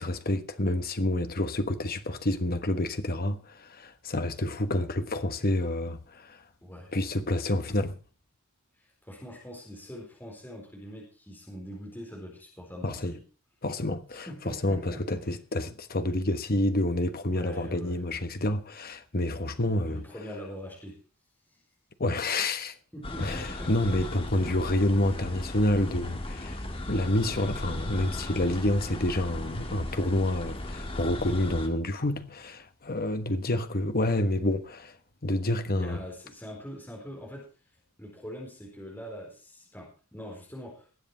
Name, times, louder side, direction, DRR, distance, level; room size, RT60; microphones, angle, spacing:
voice 1, 0.0-6.4 6.9-8.0 12.8-13.1 13.6-20.0 22.0-22.8 23.2-35.0 35.2-36.0, left 1 dB, 40° left, 1.3 m, -28 dB
voice 2, 6.6-6.9 9.0-13.2 14.1-15.0 17.2-18.0 19.8-21.0 21.5-21.6 22.9-24.1 35.7-37.5 38.0-41.0, equal, 10° left, 4.5 m, -43 dB
sound 1, 23.0-31.7, left 1 dB, 25° left, 1.8 m, -36 dB
20.0 x 8.0 x 4.4 m
head